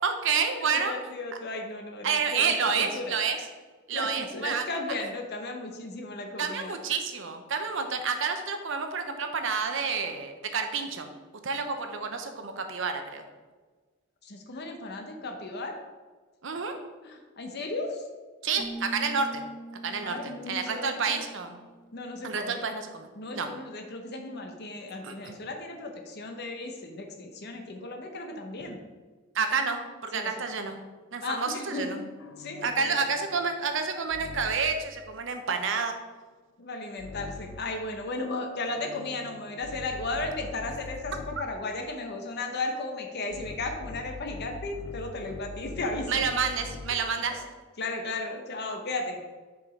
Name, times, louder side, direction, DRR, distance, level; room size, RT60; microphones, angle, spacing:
voice 1, 0.0-0.9 2.0-3.4 3.9-4.6 6.4-11.1 11.4-13.2 16.4-16.8 18.4-19.4 19.8-21.6 22.2-23.1 23.3-23.5 25.0-25.4 29.3-30.8 31.1-32.0 32.6-36.0 46.1-47.4, right 5 dB, 70° right, 6 dB, 0.8 m, -29 dB
voice 2, 0.6-3.2 3.9-6.8 14.2-15.8 17.0-18.0 20.0-21.2 21.9-22.6 23.2-28.8 30.1-30.3 31.2-31.9 32.4-32.9 36.6-46.2 46.9-47.4 47.8-49.2, left 2 dB, 55° left, 3 dB, 0.8 m, -35 dB
sound 1, 18.6-22.3, right 1 dB, 45° right, 1.5 m, -43 dB
sound 2, 32.2-34.9 37.0-37.8 38.7-41.6 43.3-47.2, left 3 dB, 90° left, 0.5 m, -43 dB
5.9 x 4.9 x 5.2 m, 1.4 s
head